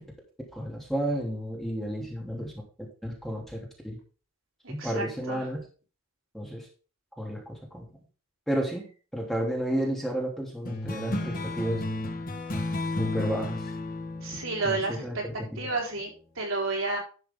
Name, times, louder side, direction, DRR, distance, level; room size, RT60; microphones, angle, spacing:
voice 1, 0.5-2.5 3.0-3.6 3.8-4.0 4.7-5.6 6.3-6.7 7.2-7.9 8.5-11.8 12.9-13.7 14.6-15.7, right 1 dB, ahead, -1 dB, 2.9 m, -32 dB
voice 2, 4.6-5.4 14.2-15.2 15.6-16.1 16.4-17.0, right 3 dB, 65° right, -1 dB, 4.2 m, -31 dB
sound 1, 10.7-15.6, left 2 dB, 45° left, 1.6 m, -33 dB
11.5 x 7.2 x 3.8 m, 0.36 s
head